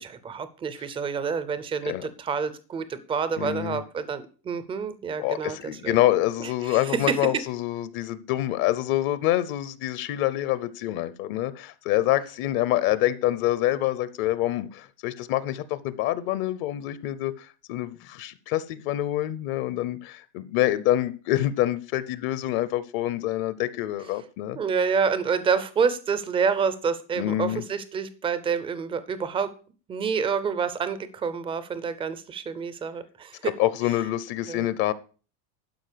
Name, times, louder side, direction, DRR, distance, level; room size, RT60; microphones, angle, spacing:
voice 1, 0.0-5.6 5.8-6.0 6.4-7.2 24.6-29.5 29.9-33.4 34.5-34.7, right 6 dB, 10° right, 13 dB, 0.4 m, -28 dB
voice 2, 3.4-3.8 5.2-24.6 27.2-27.6 33.4-34.9, left 14 dB, 50° left, 16 dB, 0.7 m, -26 dB
12.0 x 5.1 x 6.6 m, 0.38 s
cardioid pair, 165°, 49 cm